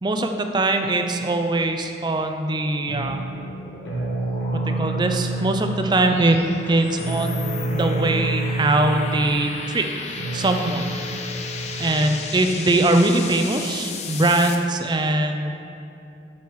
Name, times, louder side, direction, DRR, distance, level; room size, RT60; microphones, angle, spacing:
voice 1, 0.0-3.2 4.5-6.4 6.7-10.9 11.8-15.6, right 2 dB, 25° right, 5 dB, 0.4 m, -22 dB
sound 1, 2.9-12.8, right 2 dB, 80° left, 1.1 m, -29 dB
sound 2, 3.1-14.6, left 4 dB, 35° left, 0.5 m, -36 dB
9.3 x 7.1 x 3.1 m, 2.7 s
head